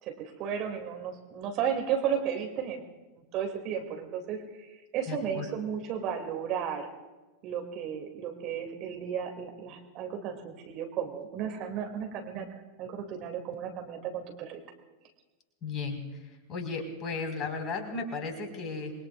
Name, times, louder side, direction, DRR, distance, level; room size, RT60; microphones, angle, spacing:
voice 1, 0.0-2.8 3.1-6.9 7.4-12.5 12.8-14.6, right 8 dB, 40° right, 4 dB, 2.4 m, -34 dB
voice 2, 5.1-5.5 15.6-16.0 16.5-18.9, left 4 dB, 30° left, 3 dB, 4.4 m, -34 dB
27.5 x 22.0 x 2.4 m, 1.2 s
figure-of-eight pair, 90°, 0 cm